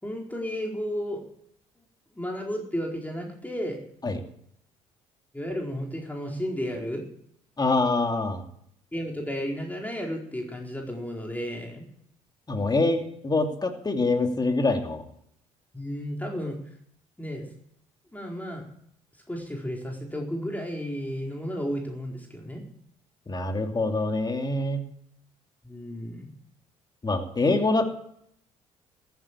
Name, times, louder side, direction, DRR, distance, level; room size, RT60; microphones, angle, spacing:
voice 1, 0.0-1.2 2.2-3.8 5.3-7.0 8.9-11.9 15.7-16.6 17.2-17.5 18.1-18.7 19.3-22.6 25.6-26.3, equal, 10° left, 0 dB, 4.3 m, -33 dB
voice 2, 7.6-8.4 12.5-15.0 23.3-24.8 27.0-27.9, left 2 dB, 25° left, 5 dB, 2.7 m, -25 dB
14.5 x 9.3 x 8.5 m, 0.69 s
hypercardioid pair, 55°, 16 cm